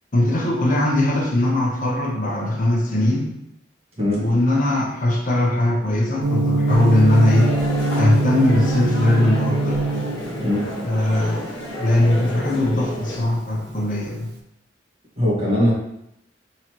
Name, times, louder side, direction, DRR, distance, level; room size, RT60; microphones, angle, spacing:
voice 1, 0.1-3.3 4.1-7.5 7.9-9.8 10.8-11.4 11.8-14.3, left 1 dB, 45° left, -1 dB, 0.8 m, -20 dB
Gong, 6.2-14.3, right 3 dB, 65° right, 0.5 m, -25 dB
sound 1, 6.7-13.2, left 1 dB, 80° left, 1.1 m, -30 dB
voice 2, 15.2-15.7, equal, 35° right, -7 dB, 1.5 m, -20 dB
3.8 x 3.1 x 3.0 m, 0.83 s
head